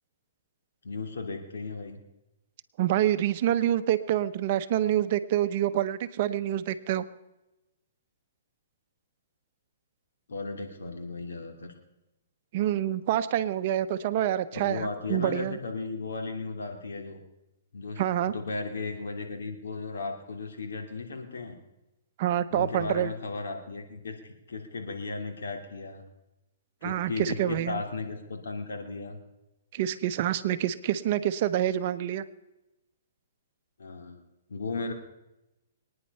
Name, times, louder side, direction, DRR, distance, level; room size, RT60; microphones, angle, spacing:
voice 1, 0.8-2.0 10.3-11.7 14.5-17.2 17.7-21.6 22.5-26.0 26.8-29.2 33.8-34.2 34.5-34.9, left 3 dB, 85° left, 4 dB, 2.8 m, -35 dB
voice 2, 2.8-7.0 12.5-15.6 18.0-18.3 22.2-23.1 26.8-27.8 29.7-32.2, right 11 dB, 45° right, 12 dB, 0.8 m, -27 dB
23.0 x 9.8 x 5.5 m, 0.96 s
hypercardioid pair, 150°, 0 cm